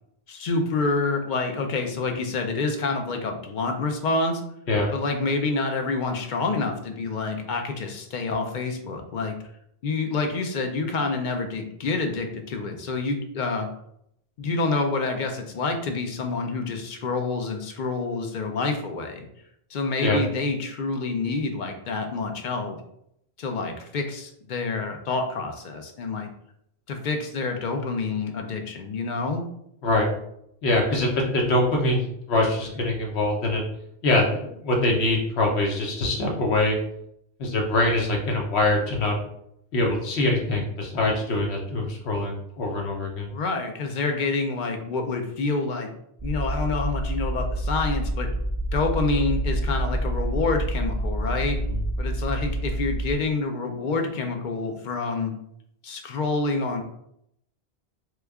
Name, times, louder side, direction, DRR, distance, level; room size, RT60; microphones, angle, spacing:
voice 1, 0.3-4.4 4.9-9.3 9.8-13.7 14.4-19.3 19.7-22.8 23.4-26.3 26.9-29.4 43.3-45.9 46.2-48.3 48.7-51.6 52.0-55.3 55.8-56.8, left 3 dB, 55° left, 4 dB, 0.6 m, -27 dB
voice 2, 30.6-33.6 34.0-36.8 37.4-39.2 39.7-43.3 51.7-51.8, left 2 dB, 80° left, 0 dB, 1.0 m, -23 dB
sound 1, 46.2-53.1, right 1 dB, 10° left, 0.3 m, -27 dB
3.1 x 2.3 x 3.4 m, 0.74 s
omnidirectional pair, 1.1 m